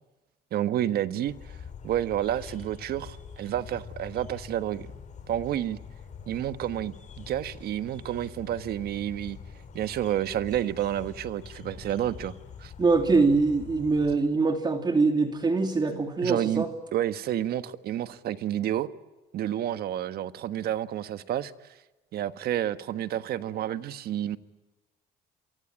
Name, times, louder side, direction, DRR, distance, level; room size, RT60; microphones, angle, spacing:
voice 1, 0.5-1.3 1.8-4.9 5.3-5.8 6.3-9.4 9.7-12.3 12.6-12.7 15.9-16.6 16.9-18.9 19.3-21.5 22.1-24.4, right 11 dB, 65° right, 1.4 m, -30 dB
sound 1, 1.3-14.2, left 7 dB, 45° left, 5.1 m, -45 dB
voice 2, 12.8-16.7, right 3 dB, 25° right, 2.5 m, -23 dB
28.5 x 24.0 x 8.8 m
cardioid pair, 110°, 17 cm